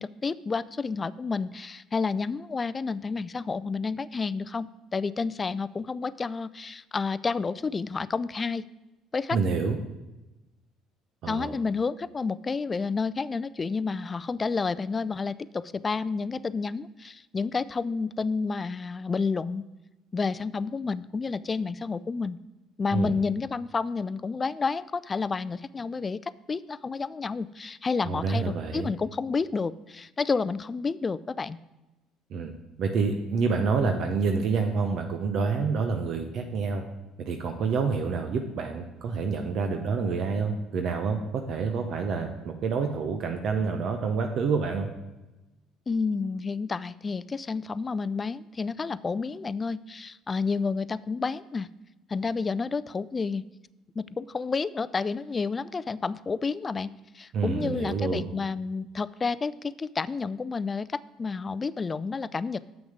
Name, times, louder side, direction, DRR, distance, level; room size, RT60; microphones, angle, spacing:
voice 1, 0.0-8.6 9.1-9.4 11.3-19.6 20.1-22.4 22.8-31.6 45.9-51.7 52.1-53.5 54.0-62.6, left 4 dB, 30° left, 17 dB, 0.3 m, -30 dB
voice 2, 9.3-9.8 11.2-11.6 22.9-23.1 28.0-28.9 32.3-32.5 32.8-36.8 37.2-44.9 57.3-58.3, right 5 dB, 60° right, 5 dB, 0.8 m, -28 dB
7.2 x 6.3 x 4.9 m, 1.0 s
hypercardioid pair, 70°, 0 cm